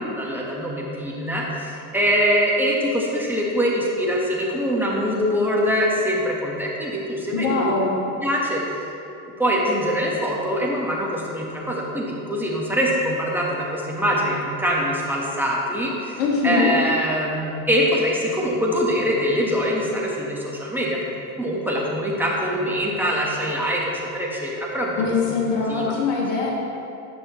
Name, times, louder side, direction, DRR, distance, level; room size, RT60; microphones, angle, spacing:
voice 1, 0.2-7.7 8.2-8.9 9.4-21.0 21.4-25.0 25.7-25.9, equal, 5° right, -4 dB, 1.5 m, -23 dB
voice 2, 7.3-8.1 16.2-16.7 25.0-26.5, left 4 dB, 65° left, -2 dB, 1.5 m, -22 dB
10.5 x 6.1 x 3.1 m, 2.7 s
supercardioid pair, 95°, 42 cm